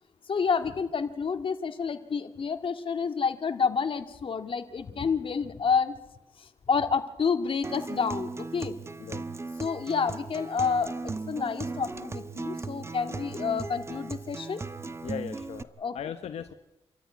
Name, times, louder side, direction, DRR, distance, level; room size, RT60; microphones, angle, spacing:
voice 1, 0.3-5.9 6.4-8.7 9.6-14.6 15.8-15.9, left 5 dB, 55° left, 7 dB, 2.0 m, -29 dB
Acoustic guitar, 7.6-15.6, right 3 dB, 25° right, 1.0 m, -37 dB
voice 2, 15.0-16.5, left 8 dB, 85° left, 8 dB, 1.1 m, -38 dB
27.0 x 13.5 x 9.6 m, 0.92 s
cardioid pair, 85°, 11 cm